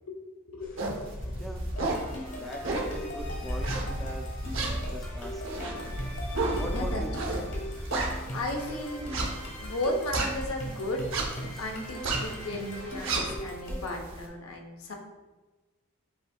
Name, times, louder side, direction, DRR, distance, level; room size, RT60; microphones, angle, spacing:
voice 1, 0.5-1.1 1.4-1.5 6.7-7.4 7.9-9.1 9.6-11.0 11.6-14.9, left 1 dB, 90° left, 2 dB, 0.7 m, -35 dB
sound 1, 0.6-13.3, equal, 40° left, 0.7 m, -38 dB
sound 2, 0.8-1.0 1.5-2.1 2.6-3.0 3.6-4.1 4.5-8.5 9.0-10.7 11.0-11.5 11.8-12.3 12.7-14.2, right 3 dB, 65° right, 0.8 m, -32 dB
sound 3, 1.8-14.1, equal, 55° left, 1.2 m, -41 dB
voice 2, 2.3-4.3 4.5-5.7 6.6-7.2 11.5-11.6, equal, ahead, 0 dB, 0.4 m, -41 dB
7.6 x 2.7 x 2.2 m, 1.2 s
head